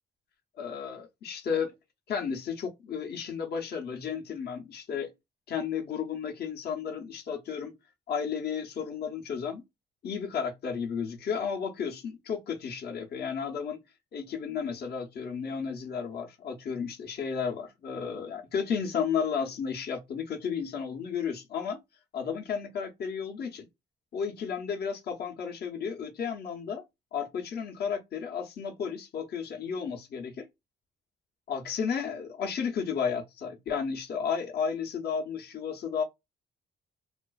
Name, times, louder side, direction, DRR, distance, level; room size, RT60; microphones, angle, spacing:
voice 1, 0.6-1.7 2.1-5.1 5.5-7.8 8.1-9.6 10.0-13.8 14.1-21.8 22.1-23.7 24.1-26.8 27.1-30.5 31.5-36.0, left 6 dB, 55° left, 0.7 m, -33 dB
2.4 x 2.3 x 2.3 m
cardioid pair, 90°, 20 cm